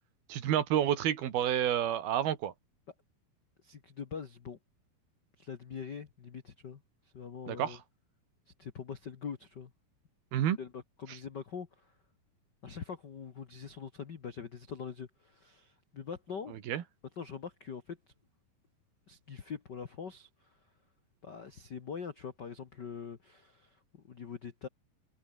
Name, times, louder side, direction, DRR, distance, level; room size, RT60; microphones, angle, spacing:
voice 1, 0.3-2.5 7.5-7.8 10.3-10.6 16.5-16.8, right 10 dB, 75° right, 3.8 m, -29 dB
voice 2, 3.6-4.6 5.4-6.8 7.1-7.8 8.6-9.7 10.4-11.8 12.6-16.5 17.2-18.0 19.1-20.3 21.2-24.7, left 6 dB, 75° left, 0.9 m, -43 dB
omnidirectional pair, 4.4 m